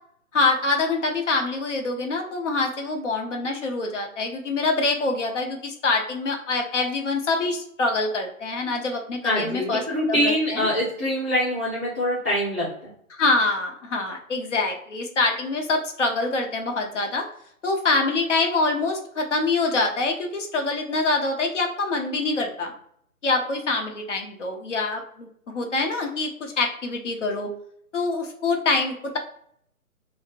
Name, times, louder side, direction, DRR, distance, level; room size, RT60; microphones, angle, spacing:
voice 1, 0.3-9.8 10.1-10.7 13.1-17.2 17.6-22.7 23.2-27.5 27.9-29.2, left 3 dB, 55° left, 2 dB, 0.7 m, -25 dB
voice 2, 9.2-12.7, equal, 10° right, -12 dB, 0.4 m, -24 dB
3.4 x 2.0 x 2.6 m, 0.67 s
figure-of-eight pair, 135°, 43 cm